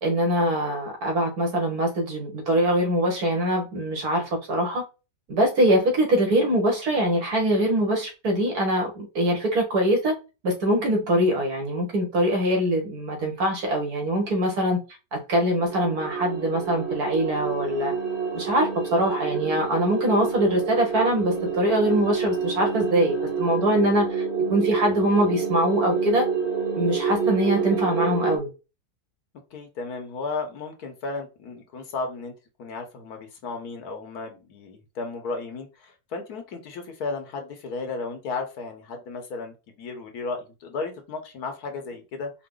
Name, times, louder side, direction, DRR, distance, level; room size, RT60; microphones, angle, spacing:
voice 1, 0.0-4.8 5.3-10.2 10.4-14.8 15.1-17.9 18.3-24.2 24.5-26.2 26.7-28.5, right 1 dB, 70° right, 1.9 m, -23 dB
sound 1, 15.6-28.4, right 5 dB, 25° right, 1.2 m, -28 dB
voice 2, 29.5-32.3 32.6-42.3, left 3 dB, 75° left, 1.4 m, -34 dB
4.7 x 2.1 x 3.8 m
omnidirectional pair, 1.7 m